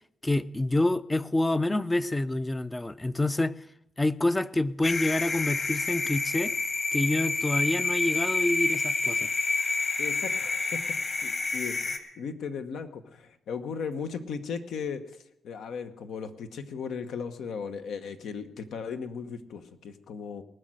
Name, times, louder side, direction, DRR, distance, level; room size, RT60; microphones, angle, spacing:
voice 1, 0.2-3.5 4.0-6.5 6.9-9.3, left 2 dB, 15° left, 0.5 m, -27 dB
sound 1, 4.8-12.0, left 3 dB, 40° left, 1.6 m, -28 dB
voice 2, 10.0-20.4, left 6 dB, 80° left, 1.1 m, -37 dB
19.5 x 6.4 x 7.7 m
cardioid pair, 90°, 0 cm